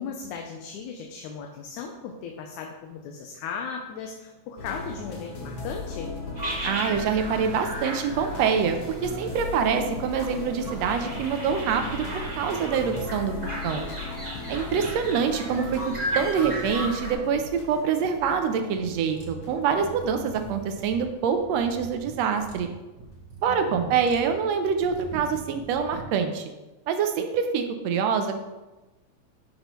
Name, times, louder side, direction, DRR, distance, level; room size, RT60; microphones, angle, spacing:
voice 1, 0.0-6.1 23.5-24.1, left 6 dB, 85° left, 2 dB, 2.2 m, -37 dB
sound 1, 4.6-22.3 22.9-23.1, left 3 dB, 65° left, 0.9 m, -38 dB
sound 2, 6.4-17.1, right 1 dB, 20° right, 1.3 m, -35 dB
voice 2, 6.6-12.1 12.3-13.4 13.6-13.9 14.5-22.7 23.4-26.5 26.9-28.4, right 6 dB, 75° right, 7 dB, 1.7 m, -25 dB
sound 3, 18.7-26.1, right 3 dB, 50° right, 1.3 m, -43 dB
12.0 x 5.5 x 3.1 m, 1.1 s
omnidirectional pair, 3.4 m